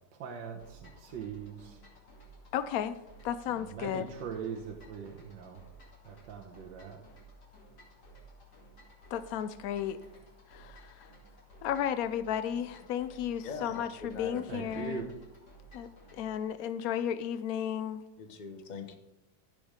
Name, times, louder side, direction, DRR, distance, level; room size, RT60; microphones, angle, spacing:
voice 1, 0.2-1.7 3.6-5.6 6.1-7.0 14.5-15.0, right 6 dB, 70° right, 2 dB, 1.6 m, -41 dB
sound 1, 0.6-16.5, right 1 dB, 55° left, 3.2 m, -55 dB
voice 2, 2.5-3.0 3.2-4.0 9.1-10.0 10.5-11.1 11.6-15.1 15.7-18.0, left 9 dB, 85° left, 12 dB, 0.7 m, -34 dB
voice 3, 13.4-14.4 18.2-19.0, left 5 dB, 30° left, 6 dB, 0.8 m, -42 dB
15.5 x 5.1 x 5.0 m, 0.89 s
omnidirectional pair, 2.1 m